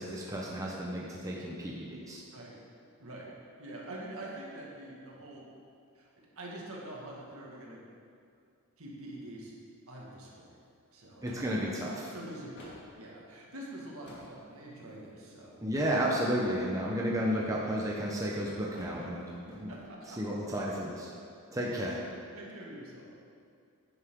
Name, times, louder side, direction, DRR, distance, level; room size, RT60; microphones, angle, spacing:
voice 1, 0.0-2.2 11.2-12.1 15.6-19.2 19.5-19.7 20.2-21.1 21.5-22.0, equal, 15° right, -4 dB, 1.1 m, -32 dB
voice 2, 3.0-3.3 3.6-5.5 5.9-7.8 8.8-9.5 9.9-10.6 10.9-11.4 12.0-15.9 19.0-19.1 19.7-19.8 22.3-23.1, right 1 dB, 65° right, -3 dB, 2.1 m, -45 dB
sound 1, 10.6-10.8 11.2-11.9 12.4-12.9 13.6-14.3 14.9-15.2 15.7-16.7 17.4-18.1 18.4-19.9, equal, 50° left, 2.4 m, -52 dB
10.5 x 9.9 x 3.9 m, 2.4 s
head